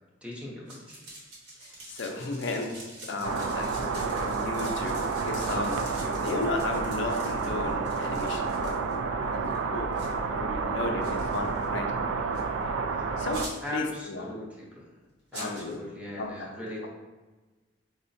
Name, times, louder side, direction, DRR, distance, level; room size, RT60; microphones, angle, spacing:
voice 1, 0.2-1.0 1.7-1.8 13.6-14.9 15.3-16.9, left 2 dB, 5° right, -4 dB, 0.7 m, -39 dB
sound 1, 0.7-8.9 9.4-9.6 9.9-10.1 11.0-11.7 12.3-12.4 13.3-13.8 15.3-15.7, right 2 dB, 65° right, 0.9 m, -46 dB
voice 2, 1.9-2.7 3.0-11.9 13.2-14.4 15.3-15.8 16.2-16.3 16.6-16.9, left 2 dB, 70° left, 3 dB, 0.5 m, -34 dB
sound 2, 3.2-13.5, right 4 dB, 85° right, 0.3 m, -30 dB
4.7 x 2.1 x 2.6 m, 1.2 s
head